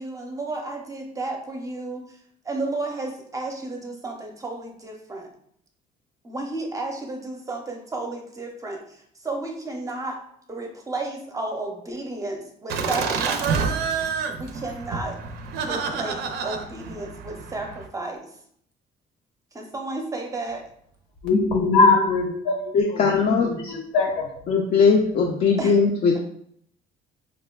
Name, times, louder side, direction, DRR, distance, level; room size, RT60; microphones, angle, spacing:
voice 1, 0.0-2.1 2.5-5.3 6.3-8.8 9.2-10.2 10.5-13.6 14.4-15.2 15.7-18.2 19.6-20.6 25.6-25.7, right 2 dB, 20° right, 2 dB, 0.6 m, -32 dB
Laughter, 12.7-17.9, right 5 dB, 75° right, 0.4 m, -28 dB
voice 2, 21.2-22.6 23.4-24.1, left 3 dB, 85° left, 1 dB, 1.0 m, -20 dB
voice 3, 22.7-23.7 24.5-26.2, left 5 dB, 50° left, -1 dB, 0.5 m, -20 dB
4.8 x 2.1 x 2.3 m, 0.67 s
cardioid pair, 110°, 17 cm